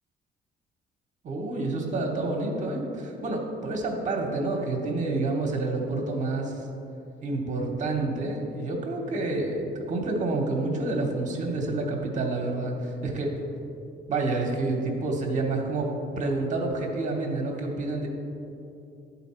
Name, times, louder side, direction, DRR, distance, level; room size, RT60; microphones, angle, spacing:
voice 1, 1.2-6.7 7.2-13.3 14.1-18.1, right 2 dB, 40° right, 1 dB, 0.9 m, -28 dB
11.0 x 4.1 x 4.3 m, 2.7 s
cardioid pair, 160°, 20 cm